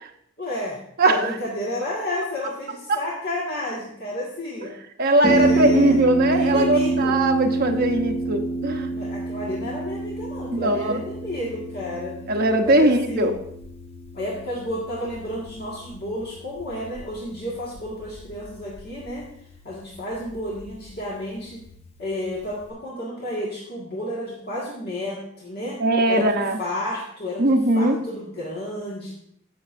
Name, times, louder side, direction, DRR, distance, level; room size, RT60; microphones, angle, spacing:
voice 1, 0.4-4.7 5.2-6.0 6.3-7.2 8.9-12.1 12.6-13.3 14.1-19.2 19.6-21.6 22.0-25.8 26.1-29.1, left 1 dB, 50° left, -5 dB, 1.8 m, -31 dB
voice 2, 1.0-1.3 2.9-3.0 5.0-8.9 10.5-11.0 12.3-13.3 25.8-26.6 27.4-28.0, right 1 dB, 50° right, 4 dB, 1.0 m, -20 dB
Harp, 5.2-22.7, right 2 dB, 30° left, 1.0 m, -29 dB
15.0 x 6.4 x 2.6 m, 0.70 s
head